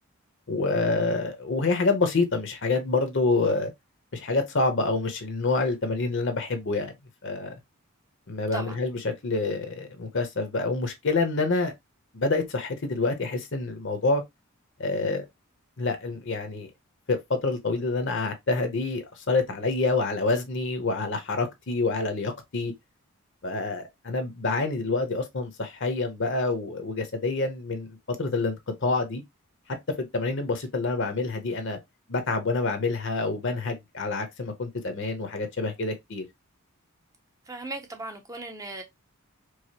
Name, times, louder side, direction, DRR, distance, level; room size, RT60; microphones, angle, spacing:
voice 1, 0.5-3.7 4.1-6.9 7.2-7.5 8.3-11.7 12.1-14.2 14.8-15.3 15.8-16.7 17.1-22.7 23.4-29.2 30.0-31.8 32.1-36.2, left 3 dB, 55° left, 0.8 m, -27 dB
voice 2, 37.5-38.8, right 2 dB, 15° right, 0.5 m, -37 dB
4.7 x 2.0 x 2.8 m
head